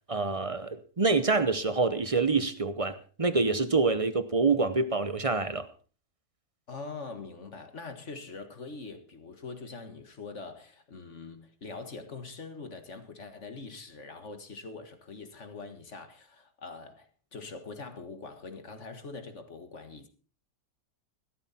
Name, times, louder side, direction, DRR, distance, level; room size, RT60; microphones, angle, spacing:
voice 1, 0.1-5.7, right 3 dB, 30° right, 0.7 m, -26 dB
voice 2, 6.7-20.1, left 4 dB, 45° left, 1.9 m, -43 dB
16.0 x 13.0 x 4.3 m
omnidirectional pair, 1.8 m